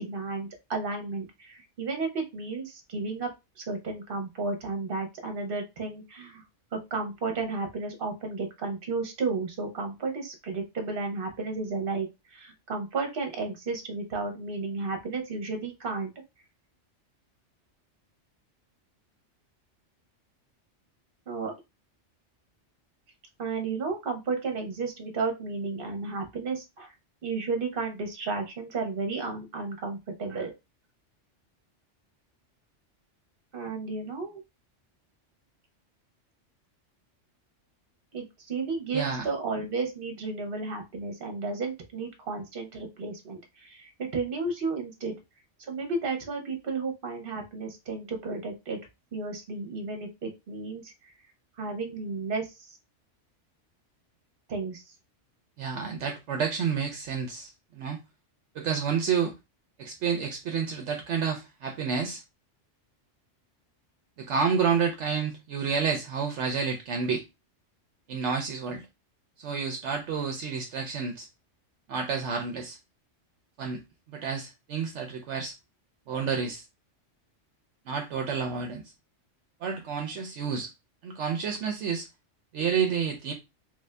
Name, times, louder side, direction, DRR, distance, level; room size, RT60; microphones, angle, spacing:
voice 1, 0.0-3.3 3.6-6.4 6.7-16.1 21.3-21.5 23.4-26.9 27.2-30.5 33.5-34.4 38.1-45.1 45.7-48.8 49.1-50.9 51.6-52.5 54.5-54.8, right 3 dB, 50° right, 1.1 m, -33 dB
voice 2, 38.9-39.3 55.6-58.0 58.5-59.3 59.8-62.2 64.2-67.2 68.1-68.9 69.4-71.3 71.9-72.8 73.6-73.8 74.1-75.5 76.1-76.6 77.9-78.8 79.6-80.7 81.0-82.1 82.5-83.3, right 6 dB, 75° right, 0.9 m, -29 dB
3.3 x 2.6 x 3.2 m
omnidirectional pair, 1.2 m